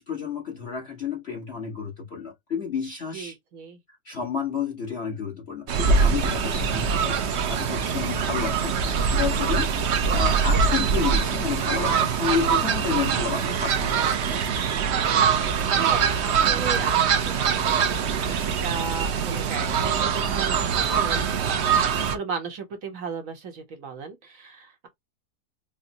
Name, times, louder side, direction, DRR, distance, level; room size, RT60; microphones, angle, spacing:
voice 1, 0.0-3.4 4.0-14.4, left 6 dB, 40° left, 1.3 m, -31 dB
voice 2, 3.1-3.8 15.1-15.3 15.6-24.9, right 5 dB, 55° right, 1.2 m, -36 dB
Fowl, 5.7-22.2, right 6 dB, 80° right, 0.6 m, -23 dB
5.1 x 2.1 x 2.7 m
omnidirectional pair, 1.9 m